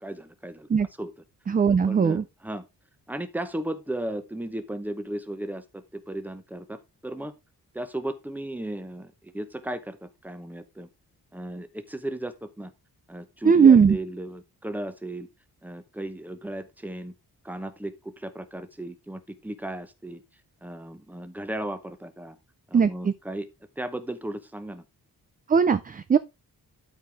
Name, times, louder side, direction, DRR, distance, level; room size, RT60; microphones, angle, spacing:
voice 1, 0.0-0.7 1.0-1.1 1.9-2.6 3.1-7.3 7.7-10.9 11.3-12.7 13.1-15.3 15.6-17.1 17.4-20.2 20.6-22.4 22.7-23.5 23.8-24.8, right 1 dB, 5° right, 0.9 m, -35 dB
voice 2, 1.5-2.2 13.5-14.0 22.7-23.1 25.5-26.2, right 6 dB, 25° right, 0.4 m, -18 dB
12.5 x 4.7 x 3.5 m
wide cardioid pair, 155°, 37 cm